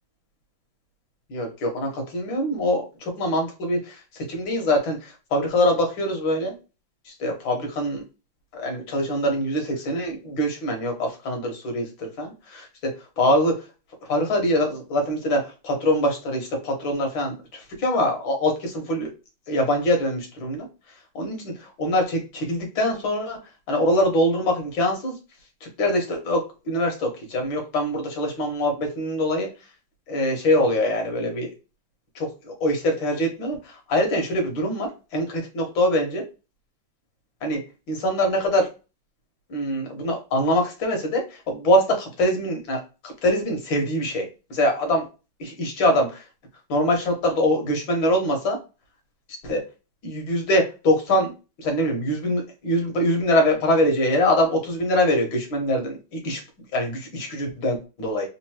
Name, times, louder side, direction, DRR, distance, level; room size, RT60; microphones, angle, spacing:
voice 1, 1.3-4.0 4.3-6.5 7.2-8.0 8.5-12.7 13.2-13.6 14.1-19.1 19.5-20.7 21.2-23.4 23.7-25.1 25.6-29.5 30.1-31.5 32.2-33.6 33.9-36.2 37.4-37.6 37.9-38.7 39.5-42.8 43.2-45.0 45.4-46.2 46.7-48.6 49.4-49.6 50.0-51.3 51.6-56.4 56.7-58.3, left 1 dB, 65° left, 2 dB, 2.0 m, -23 dB
4.3 x 2.6 x 2.8 m, 0.30 s
omnidirectional pair, 2.3 m